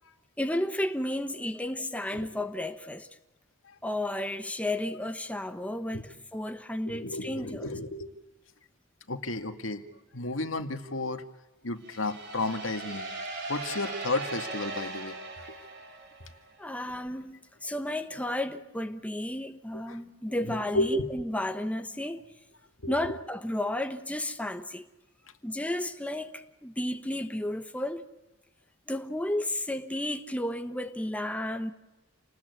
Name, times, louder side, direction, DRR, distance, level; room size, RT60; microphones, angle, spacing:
voice 1, 0.4-3.1 3.8-7.8 16.6-22.2 22.9-24.9 25.4-28.0 28.9-31.7, left 1 dB, 5° left, 1.1 m, -32 dB
voice 2, 6.9-8.1 9.1-9.8 10.1-11.2 11.6-13.1 13.5-15.2 15.5-15.6 19.9-20.0 20.5-21.1 22.8-23.0, left 2 dB, 85° left, 2.0 m, -32 dB
sound 1, 11.8-16.5, right 3 dB, 55° right, 5.9 m, -39 dB
28.5 x 20.0 x 8.4 m
head